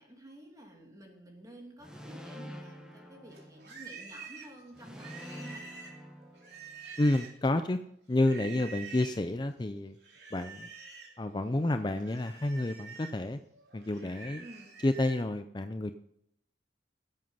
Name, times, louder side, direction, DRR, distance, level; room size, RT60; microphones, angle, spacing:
voice 1, 0.0-5.7 14.3-14.7, right 1 dB, 20° right, 1 dB, 2.6 m, -51 dB
sound 1, 1.8-4.0 4.7-7.0, equal, 5° right, 1.4 m, -47 dB
Livestock farm animals working animals, 3.3-7.5 8.1-9.2 10.0-11.2 11.5-15.2, right 5 dB, 75° right, 2.8 m, -48 dB
voice 2, 7.0-7.8 8.1-10.0 10.3-10.7 11.2-13.4 13.7-14.4 14.8-15.9, left 1 dB, 25° left, 9 dB, 0.5 m, -30 dB
17.0 x 7.8 x 5.6 m, 0.70 s
head